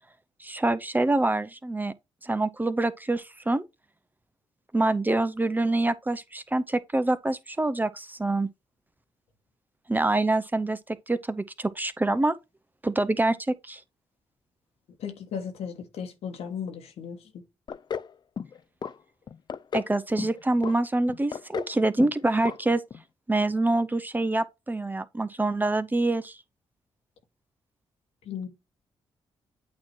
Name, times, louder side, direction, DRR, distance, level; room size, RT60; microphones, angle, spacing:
voice 1, 0.4-1.9 2.2-3.6 4.7-8.5 9.9-12.4 12.8-13.8 19.7-22.8 23.3-26.4, right 2 dB, 15° right, 0.6 m, -26 dB
voice 2, 15.0-17.4 28.2-28.5, left 7 dB, 80° left, 1.4 m, -36 dB
sound 1, 17.7-18.1 18.4-18.9 19.3-19.9 20.2-20.8 21.1-21.7 22.0-22.2 22.5-22.6 22.9-23.0, left 7 dB, 45° left, 0.4 m, -33 dB
8.6 x 2.9 x 4.4 m
supercardioid pair, 60°, 10 cm